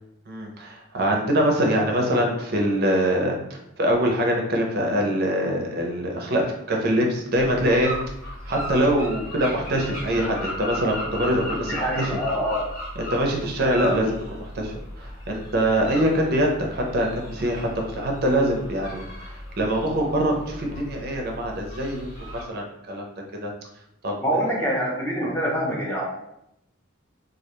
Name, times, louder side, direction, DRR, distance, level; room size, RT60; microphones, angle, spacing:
voice 1, 0.3-6.4 6.7-7.9 8.2-12.1 13.0-22.1 22.3-23.1 23.4-23.5 24.0-24.4 25.2-25.3, equal, 50° right, 1 dB, 0.4 m, -24 dB
sound 1, 7.3-22.4, left 1 dB, 45° left, 0.9 m, -36 dB
voice 2, 11.7-12.6 24.2-26.0, equal, 10° left, -4 dB, 0.5 m, -25 dB
2.3 x 2.1 x 2.9 m, 0.80 s
head